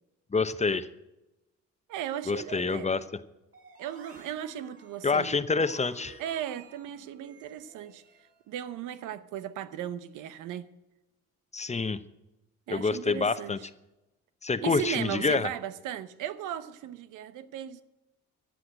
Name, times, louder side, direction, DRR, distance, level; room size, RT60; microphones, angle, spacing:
voice 1, 0.3-0.9 2.3-3.0 5.0-6.2 11.5-12.0 12.7-13.6 14.4-15.5, left 4 dB, 20° left, 0.9 m, -27 dB
voice 2, 1.9-2.9 3.8-5.4 6.2-8.0 8.5-10.7 12.7-13.6 14.6-17.8, right 10 dB, 90° right, 0.9 m, -36 dB
sound 1, 3.5-8.4, right 3 dB, 50° right, 5.7 m, -53 dB
14.5 x 7.9 x 8.9 m
cardioid pair, 90°, 30 cm